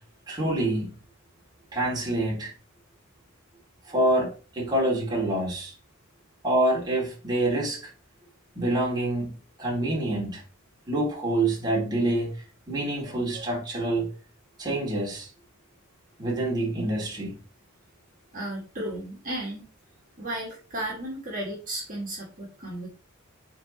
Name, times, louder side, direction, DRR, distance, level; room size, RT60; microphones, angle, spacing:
voice 1, 0.3-0.9 1.7-2.5 3.9-5.7 6.4-7.9 8.5-9.3 9.6-10.4 10.9-14.1 14.6-15.3 16.2-17.3, right 1 dB, 20° right, 2.8 m, -26 dB
voice 2, 18.3-19.7 20.2-22.9, right 1 dB, 40° right, 2.2 m, -34 dB
9.2 x 4.1 x 3.1 m
head